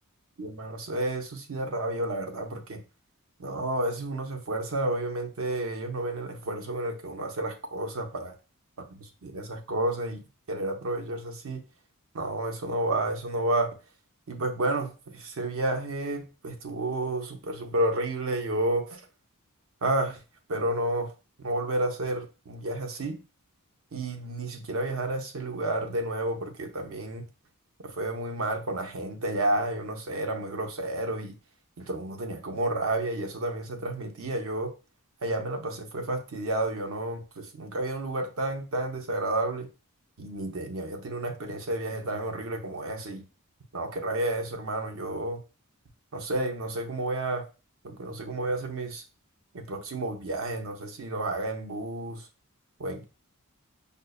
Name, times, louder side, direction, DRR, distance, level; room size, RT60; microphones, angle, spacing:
voice 1, 0.4-2.8 3.4-8.3 9.2-11.6 12.1-13.7 14.3-19.0 19.8-20.2 20.5-21.1 21.4-23.2 23.9-27.2 27.8-31.4 31.8-34.7 35.2-39.7 40.2-43.2 43.7-45.4 46.1-47.4 47.8-49.0 49.5-52.3 52.8-53.0, right 1 dB, 65° right, 5 dB, 0.6 m, -31 dB
5.1 x 2.1 x 2.3 m, 0.32 s
head